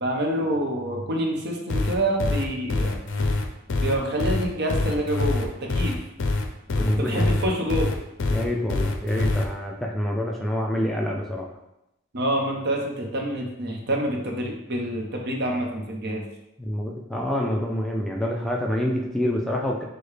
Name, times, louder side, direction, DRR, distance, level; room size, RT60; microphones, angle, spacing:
voice 1, 0.0-3.0 3.8-6.0 7.0-7.9 12.1-16.3, right 1 dB, 55° right, 1 dB, 0.8 m, -27 dB
sound 1, 1.7-9.5, left 2 dB, 65° left, 0.5 m, -25 dB
voice 2, 6.7-7.4 8.3-11.5 16.6-19.8, equal, ahead, -1 dB, 0.4 m, -26 dB
6.5 x 2.2 x 3.2 m, 0.87 s
head